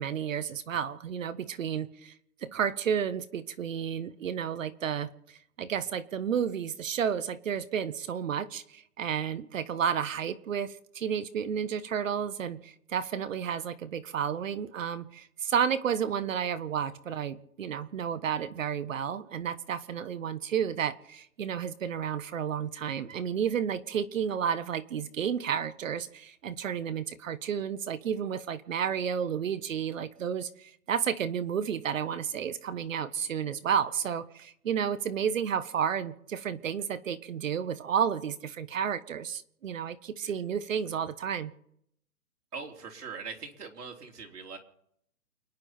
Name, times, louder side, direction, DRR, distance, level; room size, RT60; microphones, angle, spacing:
voice 1, 0.0-2.1 2.4-5.1 5.6-41.5, right 8 dB, 55° right, 1.2 m, -31 dB
voice 2, 42.5-44.6, right 5 dB, 80° right, 3.5 m, -41 dB
29.5 x 10.0 x 4.3 m
hypercardioid pair, 155°, 46 cm